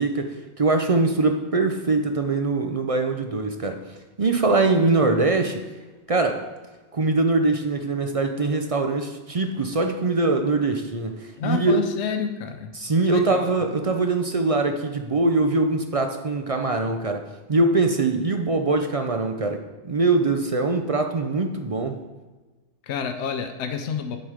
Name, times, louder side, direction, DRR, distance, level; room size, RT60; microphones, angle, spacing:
voice 1, 0.0-3.8 4.2-5.6 6.1-6.4 6.9-11.8 12.8-17.2 17.5-22.0, right 3 dB, 45° right, 5 dB, 0.4 m, -22 dB
voice 2, 11.4-12.7 13.0-13.5 22.8-24.2, left 6 dB, 70° left, 6 dB, 0.9 m, -29 dB
7.9 x 5.9 x 5.0 m, 1.3 s
omnidirectional pair, 1.2 m